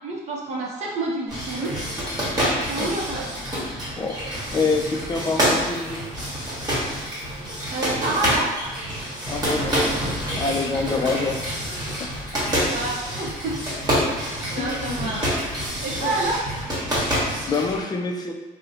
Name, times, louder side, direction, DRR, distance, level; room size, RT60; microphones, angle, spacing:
voice 1, 0.0-1.7 2.5-3.4 7.7-8.5 11.0-11.1 12.7-13.6 14.2-15.3 15.6-16.5, right 2 dB, 40° right, -3 dB, 0.6 m, -29 dB
sound 1, 1.3-17.8, equal, 25° right, 1.1 m, -27 dB
Drill, 2.7-3.1 5.7-6.1 8.7-9.1 11.7-12.1, equal, 5° right, 0.8 m, -43 dB
voice 2, 4.0-6.0 9.3-9.8 10.3-11.5 12.0-12.1 14.6-15.2 16.0-16.1 17.5-18.3, left 4 dB, 25° left, 2 dB, 0.3 m, -26 dB
2.6 x 2.0 x 4.0 m, 1.2 s
cardioid pair, 110°, 17 cm